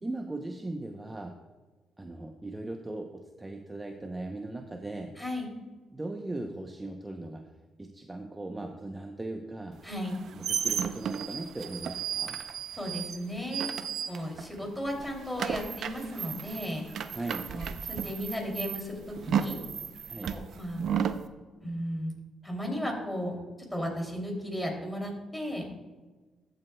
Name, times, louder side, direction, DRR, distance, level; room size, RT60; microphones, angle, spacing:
voice 1, 0.0-1.4 2.0-5.2 5.9-7.5 7.8-9.8 10.3-12.4 17.1-17.5 20.1-20.4, right 2 dB, 15° right, 4 dB, 0.6 m, -38 dB
voice 2, 5.2-5.5 9.8-10.2 12.7-13.7 14.1-17.1 17.5-19.6 20.3-20.8 21.6-22.1 22.4-23.4 23.7-25.7, equal, 10° left, 0 dB, 2.6 m, -35 dB
sound 1, 10.0-14.6 14.9-21.2, right 8 dB, 65° right, 0.5 m, -34 dB
14.0 x 7.6 x 2.2 m, 1.3 s
cardioid pair, 90°, 0 cm